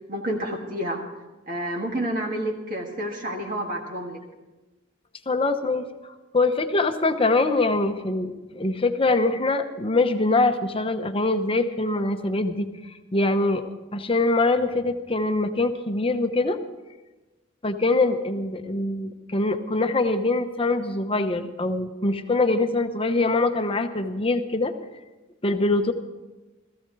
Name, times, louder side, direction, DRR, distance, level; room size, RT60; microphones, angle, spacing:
voice 1, 0.1-1.0 1.5-4.2, right 1 dB, 45° right, 0 dB, 1.7 m, -29 dB
voice 2, 5.3-5.9 6.3-13.6 13.9-16.6 17.6-24.7 25.4-25.9, left 2 dB, 25° left, 8 dB, 0.8 m, -23 dB
16.5 x 15.0 x 4.7 m, 1.1 s
head